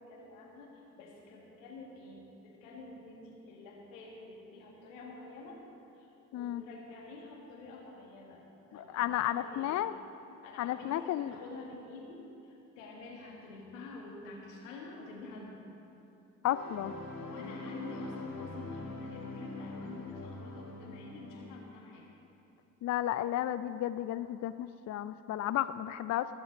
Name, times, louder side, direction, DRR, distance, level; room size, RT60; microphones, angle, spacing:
voice 1, 0.0-5.6 5.9-8.4 8.7-9.9 10.4-15.6 17.2-22.1, left 2 dB, 85° left, -1 dB, 1.7 m, -48 dB
voice 2, 8.7-9.9 10.6-11.3 16.4-16.9 22.8-26.4, left 12 dB, 45° left, 13 dB, 0.4 m, -33 dB
sound 1, 16.5-21.5, left 2 dB, 65° left, 3.1 m, -43 dB
19.5 x 7.1 x 5.1 m, 2.9 s
hypercardioid pair, 45°, 38 cm